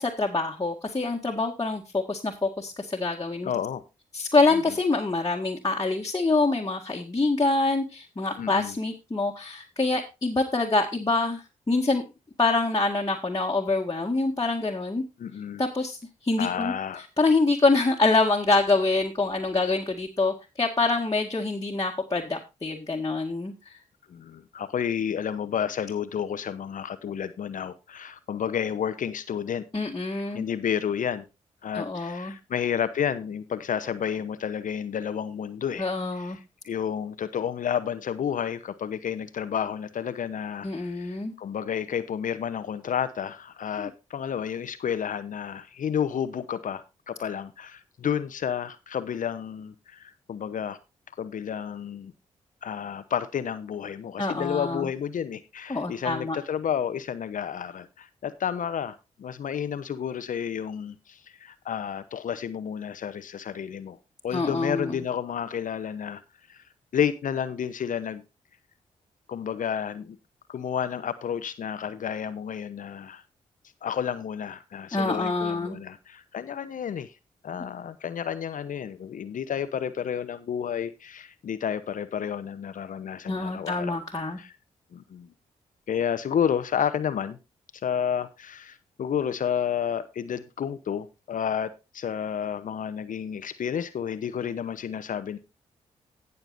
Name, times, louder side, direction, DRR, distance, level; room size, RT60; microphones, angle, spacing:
voice 1, 0.0-3.5 4.1-12.0 12.4-15.0 15.6-16.0 16.2-16.7 17.2-23.5 29.7-30.5 31.8-32.3 35.8-36.4 40.6-41.3 43.8-43.9 54.2-54.9 55.7-56.4 64.3-65.0 74.9-75.8 83.3-84.4, left 3 dB, 25° left, -2 dB, 1.9 m, -25 dB
voice 2, 3.4-3.8 4.5-4.6 8.4-8.8 15.2-15.6 16.4-17.1 24.1-29.6 30.3-31.2 31.6-35.9 36.1-36.4 36.6-50.8 51.2-52.1 52.6-64.0 64.2-66.2 66.5-66.6 66.9-68.2 69.3-70.2 70.5-73.2 73.8-77.1 77.4-84.0 84.4-84.5 84.9-85.3 85.9-87.4 87.8-95.4, left 8 dB, 65° left, 13 dB, 0.8 m, -31 dB
19.0 x 6.8 x 2.6 m, 0.26 s
supercardioid pair, 45°, 15 cm